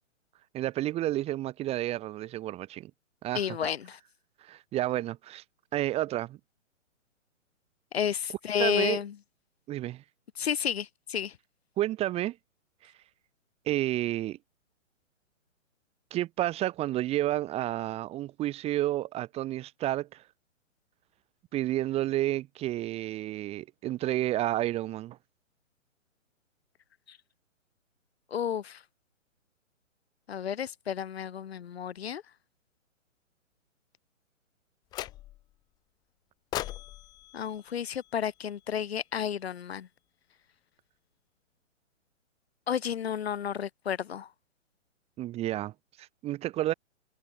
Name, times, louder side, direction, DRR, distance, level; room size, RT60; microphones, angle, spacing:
voice 1, 0.5-2.9 3.2-3.6 4.4-5.4 5.7-6.4 8.6-9.0 9.7-10.0 11.8-12.4 12.8-12.9 13.6-14.4 16.1-20.2 21.5-25.2 45.2-46.7, right 14 dB, 15° right, 1.7 m, -30 dB
voice 2, 3.3-4.0 7.9-9.1 10.4-11.3 28.3-28.8 30.3-32.2 37.3-39.9 42.7-44.3, left 8 dB, 50° left, 3.1 m, -31 dB
sound 1, 34.9-35.6 36.5-38.8, left 15 dB, 10° left, 0.8 m, -40 dB
figure-of-eight pair, 125°, 40 cm